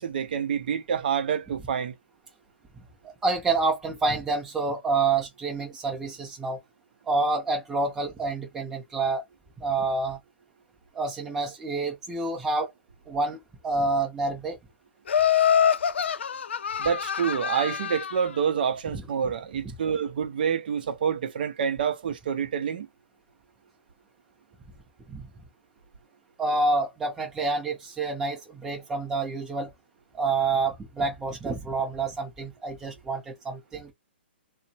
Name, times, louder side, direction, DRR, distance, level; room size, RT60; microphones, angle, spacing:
voice 1, 0.0-2.0 16.8-22.9, right 7 dB, 50° right, 0.5 m, -27 dB
voice 2, 3.2-6.6 7.1-9.2 9.6-10.2 10.9-12.7 13.1-14.6 18.9-19.0 25.1-25.3 26.4-29.7 30.1-33.9, right 3 dB, 5° right, 0.6 m, -28 dB
Laughter, 15.1-18.3, left 8 dB, 80° left, 0.4 m, -25 dB
2.9 x 2.0 x 2.7 m
hypercardioid pair, 165°, 6 cm